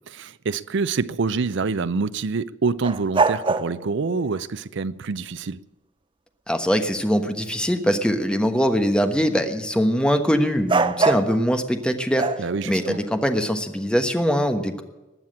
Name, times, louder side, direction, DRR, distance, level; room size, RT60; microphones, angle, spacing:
voice 1, 0.1-5.6 12.4-13.0, right 4 dB, 65° right, 0.5 m, -26 dB
sound 1, 2.8-4.4 10.7-11.4 12.2-13.6, right 4 dB, 25° right, 0.6 m, -24 dB
voice 2, 6.5-12.3 12.7-14.8, equal, 5° left, 1.2 m, -22 dB
20.0 x 7.4 x 8.6 m
head